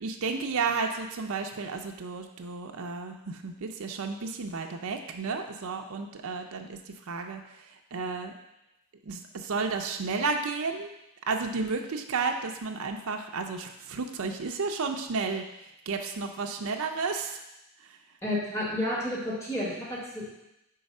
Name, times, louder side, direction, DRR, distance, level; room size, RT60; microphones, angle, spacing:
voice 1, 0.0-6.8 7.1-7.6 7.9-8.3 9.1-10.9 11.3-17.4 17.9-18.0, right 4 dB, 75° right, 4 dB, 0.5 m, -32 dB
voice 2, 18.2-20.3, left 1 dB, 15° left, -6 dB, 1.5 m, -31 dB
4.7 x 4.0 x 5.3 m, 0.88 s
head